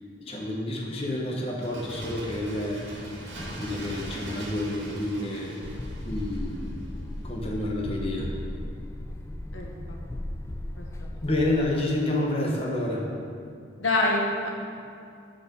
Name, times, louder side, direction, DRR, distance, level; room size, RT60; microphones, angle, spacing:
voice 1, 0.2-2.8 3.5-5.6 6.0-6.7 7.2-8.3 11.2-13.1, left 1 dB, 30° left, -2 dB, 0.9 m, -29 dB
Bird, 1.4-7.0 7.3-7.4, right 1 dB, 75° right, 1.9 m, -40 dB
sound 1, 5.6-11.6, left 1 dB, 15° left, 0.3 m, -36 dB
voice 2, 9.5-10.0 10.8-10.9 13.8-14.5, left 2 dB, 90° left, 0 dB, 1.1 m, -26 dB
9.1 x 4.5 x 5.2 m, 2.4 s
head